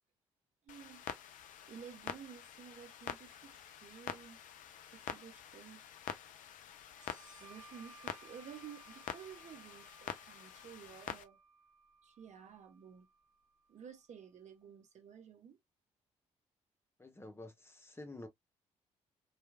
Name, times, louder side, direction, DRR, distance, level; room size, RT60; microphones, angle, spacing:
Clock, 0.7-11.2, left 9 dB, 55° left, 0.5 m, -47 dB
voice 1, 0.7-1.1 1.7-4.4 4.8-5.9 7.4-11.4 12.0-13.1 13.7-15.6, right 8 dB, 45° right, 0.9 m, -53 dB
sound 1, 6.9-14.2, right 4 dB, 85° right, 0.9 m, -62 dB
voice 2, 17.0-18.3, left 2 dB, 15° left, 0.9 m, -49 dB
3.0 x 2.3 x 2.3 m
figure-of-eight pair, 40°, 16 cm